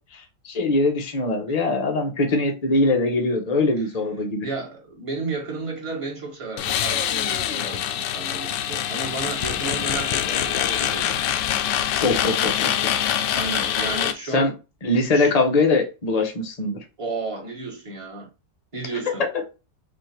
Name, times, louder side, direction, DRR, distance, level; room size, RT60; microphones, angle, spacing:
voice 1, 0.1-4.5 12.0-12.9 14.3-14.5 14.8-16.8, left 2 dB, 45° left, 0.5 m, -22 dB
voice 2, 4.4-11.2 12.7-14.6 15.1-15.3 17.0-18.3 18.7-19.3, right 3 dB, 20° right, 1.1 m, -33 dB
sound 1, 6.6-14.1, left 10 dB, 80° left, 1.2 m, -24 dB
4.2 x 2.7 x 4.3 m
omnidirectional pair, 1.9 m